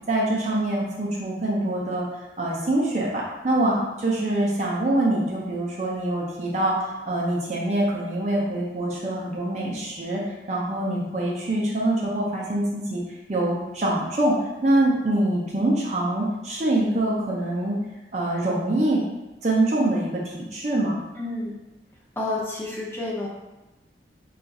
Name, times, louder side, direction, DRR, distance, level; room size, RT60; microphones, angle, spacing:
voice 1, 0.1-2.1 2.4-10.2 10.5-13.0 13.3-17.8 18.1-19.0 19.4-21.0, right 1 dB, 40° right, -4 dB, 0.5 m, -24 dB
voice 2, 21.2-21.5 22.2-23.3, left 2 dB, 10° left, -4 dB, 0.6 m, -29 dB
2.5 x 2.4 x 4.0 m, 1.0 s
head